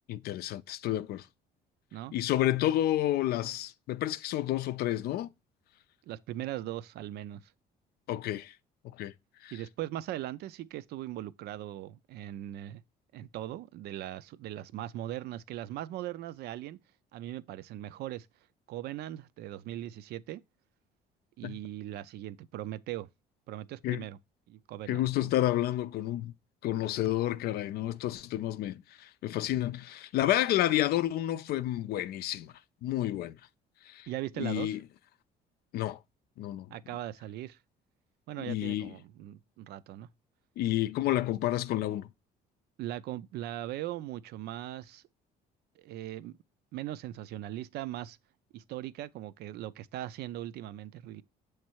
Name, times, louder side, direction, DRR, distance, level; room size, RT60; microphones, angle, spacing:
voice 1, 0.1-1.3 2.1-5.3 8.1-8.5 8.8-9.1 9.4-9.5 21.4-21.6 23.8-24.0 24.9-26.3 26.6-32.5 32.8-33.4 33.8-34.1 34.4-34.8 35.7-36.0 36.4-36.7 38.4-38.9 40.6-42.1, left 14 dB, 70° left, 0.4 m, -30 dB
voice 2, 6.1-7.5 9.5-12.8 13.1-16.8 17.1-18.3 18.7-20.4 21.4-23.1 23.5-24.2 24.5-25.3 34.1-34.8 36.7-37.6 38.3-40.1 42.8-45.0 45.8-46.4 46.7-48.2 48.5-51.2, right 13 dB, 75° right, 0.4 m, -39 dB
7.2 x 3.2 x 4.5 m
cardioid pair, 110°, 17 cm